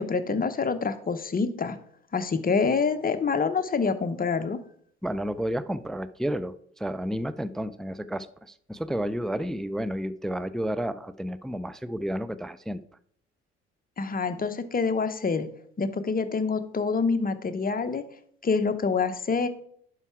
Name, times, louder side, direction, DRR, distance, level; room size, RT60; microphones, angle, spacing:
voice 1, 0.0-1.8 2.1-4.6 14.0-15.5 15.8-18.0 18.4-19.5, left 5 dB, 25° left, 9 dB, 1.0 m, -26 dB
voice 2, 5.0-12.8, equal, ahead, 15 dB, 0.3 m, -31 dB
11.0 x 4.8 x 4.6 m, 0.64 s
hypercardioid pair, 55°, 35 cm